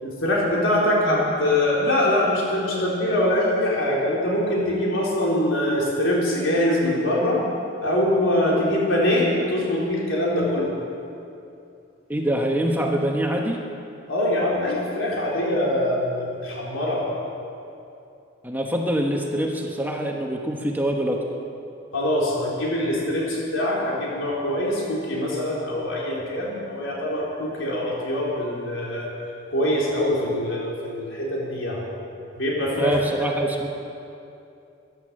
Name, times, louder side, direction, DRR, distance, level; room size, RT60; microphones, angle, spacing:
voice 1, 0.0-7.4 7.8-10.7 14.1-17.0 21.9-29.1 29.5-31.8 32.3-33.0, left 1 dB, 85° left, -4 dB, 4.0 m, -23 dB
voice 2, 12.1-13.6 18.4-21.2 32.8-33.7, right 1 dB, 10° right, 1 dB, 1.0 m, -24 dB
14.5 x 11.0 x 7.5 m, 2.7 s
head